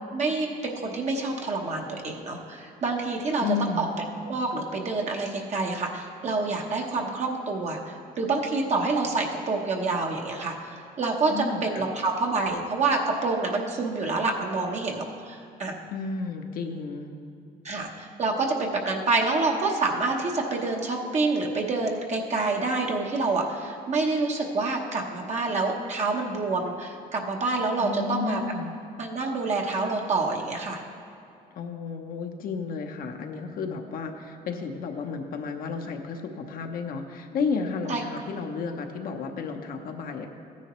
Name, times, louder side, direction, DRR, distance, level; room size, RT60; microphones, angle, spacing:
voice 1, 0.1-3.9 4.2-15.7 17.6-28.4 29.0-30.8 37.9-38.0, right 3 dB, 40° right, 0 dB, 1.0 m, -27 dB
voice 2, 3.4-4.0 11.3-11.9 15.9-17.1 27.8-28.7 31.5-40.3, left 5 dB, 60° left, 4 dB, 0.9 m, -32 dB
14.5 x 9.8 x 3.1 m, 2.6 s
cardioid pair, 110°, 17 cm